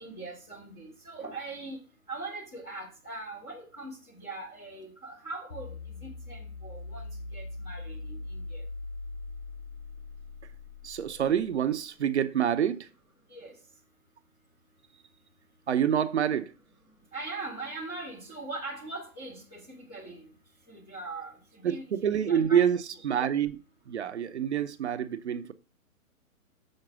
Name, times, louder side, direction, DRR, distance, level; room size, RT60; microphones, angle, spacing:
voice 1, 0.0-1.8 2.1-8.6 13.3-13.5 17.1-20.3 20.7-22.6, right 2 dB, 5° left, 0.4 m, -41 dB
sound 1, 5.5-11.8, left 3 dB, 70° left, 0.8 m, -41 dB
voice 2, 10.8-12.9 15.7-16.5 21.6-23.6 23.9-25.5, right 9 dB, 50° right, 0.8 m, -27 dB
6.5 x 4.6 x 5.9 m
figure-of-eight pair, 125°, 42 cm